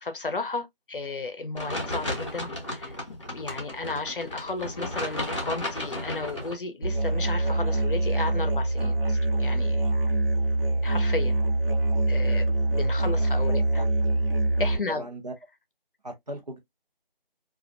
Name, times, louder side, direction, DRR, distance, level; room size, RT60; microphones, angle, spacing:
voice 1, 0.0-9.8 10.8-11.4 12.1-13.8 14.6-15.1, left 3 dB, 65° left, 0.6 m, -34 dB
sound 1, 1.6-6.6, left 1 dB, 30° left, 0.8 m, -34 dB
Musical instrument, 6.8-14.8, right 2 dB, 70° right, 0.9 m, -24 dB
voice 2, 14.9-15.3 16.0-16.6, right 1 dB, 45° right, 0.8 m, -38 dB
2.4 x 2.1 x 2.4 m
figure-of-eight pair, 170°, 29 cm